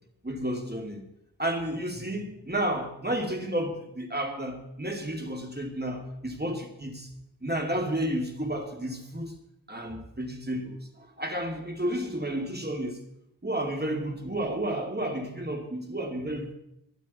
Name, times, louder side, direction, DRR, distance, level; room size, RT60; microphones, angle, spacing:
voice 1, 0.2-1.0 1.4-7.1 7.4-9.3 9.7-13.0 13.4-16.5, right 1 dB, 25° right, 2.7 m, -31 dB
22.0 x 11.5 x 4.3 m
wide cardioid pair, 60°, 40 cm